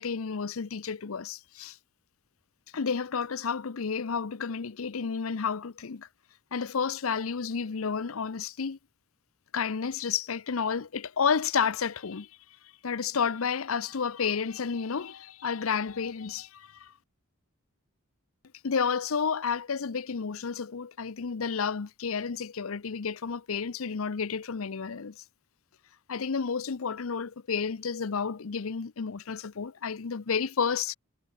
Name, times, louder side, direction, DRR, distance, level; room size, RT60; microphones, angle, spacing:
voice 1, 0.0-1.8 2.7-6.1 6.5-8.8 9.5-12.3 12.8-16.9 18.6-25.2 26.1-30.9, left 6 dB, 80° left, 0.7 m, -31 dB
head